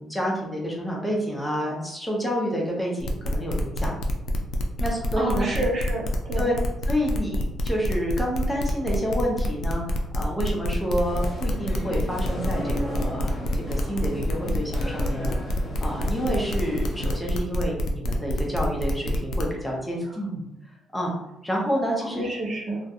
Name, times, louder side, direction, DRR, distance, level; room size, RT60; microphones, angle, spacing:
voice 1, 0.0-3.9 4.8-5.5 6.4-6.5 6.8-20.4 20.7-21.1 21.4-22.3, equal, 5° left, -2 dB, 0.6 m, -29 dB
sound 1, 3.0-19.4, left 1 dB, 70° left, 0.4 m, -28 dB
voice 2, 5.2-6.4 22.0-22.8, right 1 dB, 55° right, -2 dB, 0.8 m, -29 dB
sound 2, 11.0-17.2, left 1 dB, 30° left, 1.0 m, -35 dB
2.4 x 2.1 x 2.8 m, 0.91 s
cardioid pair, 90°, 0 cm